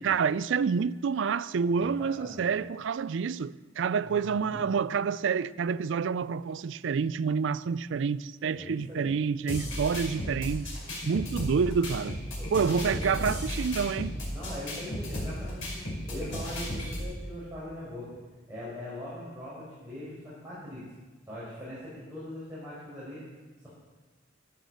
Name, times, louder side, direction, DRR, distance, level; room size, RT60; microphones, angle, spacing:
voice 1, 0.0-10.7 11.1-12.2 12.5-14.1, right 6 dB, 65° right, 0.4 m, -28 dB
voice 2, 1.8-2.5 4.0-4.6 8.5-9.1 12.4-13.3 14.3-15.6 16.1-18.2 18.5-20.8 21.3-23.2, left 1 dB, 15° right, 4.8 m, -41 dB
sound 1, 9.5-17.0, equal, 85° left, 4.8 m, -34 dB
13.5 x 9.3 x 6.5 m
head